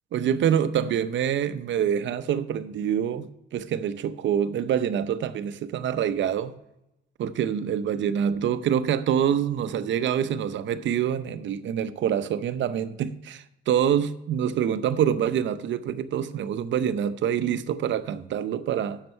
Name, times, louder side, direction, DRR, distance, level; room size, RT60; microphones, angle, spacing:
voice 1, 0.1-6.5 7.2-19.0, right 9 dB, 70° right, 0.7 m, -26 dB
7.8 x 6.6 x 5.4 m
cardioid pair, 90°, 20 cm